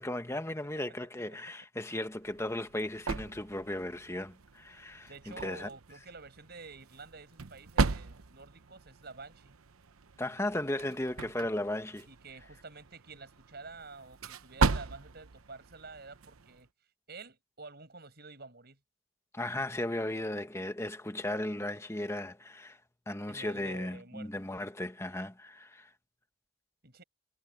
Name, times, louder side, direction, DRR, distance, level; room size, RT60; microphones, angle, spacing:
voice 1, 0.0-5.7 10.2-12.1 19.3-22.8 23.1-25.9, left 1 dB, 15° left, 1.2 m, -36 dB
sound 1, 2.1-16.7, right 4 dB, 85° right, 0.9 m, -37 dB
voice 2, 5.1-9.6 12.1-16.7 17.1-18.8 23.3-24.3 26.8-27.0, right 3 dB, 50° right, 5.7 m, -49 dB
head